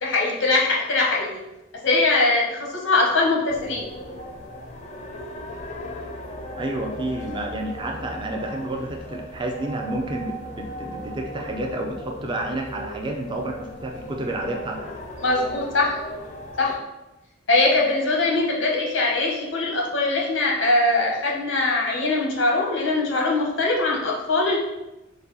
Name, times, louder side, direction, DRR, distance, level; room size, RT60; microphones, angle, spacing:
voice 1, 0.0-1.4 1.8-3.9 15.2-16.0 16.6-16.7 17.5-24.6, left 2 dB, 85° left, -2 dB, 1.0 m, -22 dB
sound 1, 3.5-16.8, equal, 40° left, 0.5 m, -37 dB
voice 2, 6.6-14.9, right 1 dB, 25° right, 1 dB, 0.4 m, -30 dB
4.1 x 2.2 x 3.9 m, 0.99 s
head